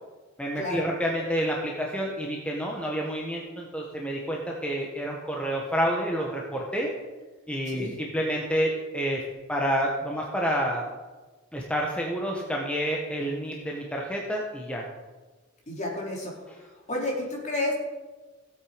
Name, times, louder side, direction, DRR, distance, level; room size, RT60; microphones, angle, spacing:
voice 1, 0.4-6.9 7.5-9.2 9.5-10.8 11.5-14.9 16.5-16.6, equal, 5° left, -1 dB, 1.3 m, -29 dB
voice 2, 15.7-16.3 16.9-17.7, left 1 dB, 35° left, -2 dB, 3.6 m, -30 dB
16.5 x 8.2 x 5.1 m, 1.3 s
head